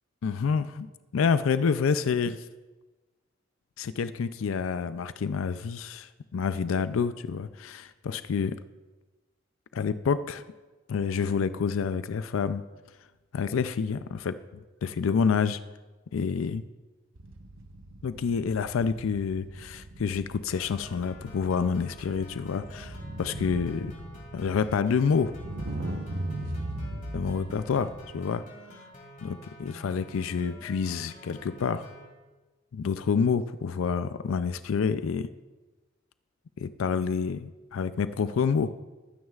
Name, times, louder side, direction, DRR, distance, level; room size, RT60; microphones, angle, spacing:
voice 1, 0.2-0.9 1.1-2.4 3.8-8.6 9.7-10.4 10.9-12.6 13.3-15.6 16.1-16.6 18.0-23.9 24.3-25.4 27.1-28.5 29.2-31.9 32.7-35.3 36.6-38.8, left 5 dB, 90° left, 13 dB, 0.4 m, -28 dB
sound 1, 17.2-28.1, right 1 dB, 75° right, 1.0 m, -39 dB
sound 2, 20.5-32.1, equal, 40° left, 2.5 m, -49 dB
21.0 x 9.5 x 2.4 m, 1.2 s
head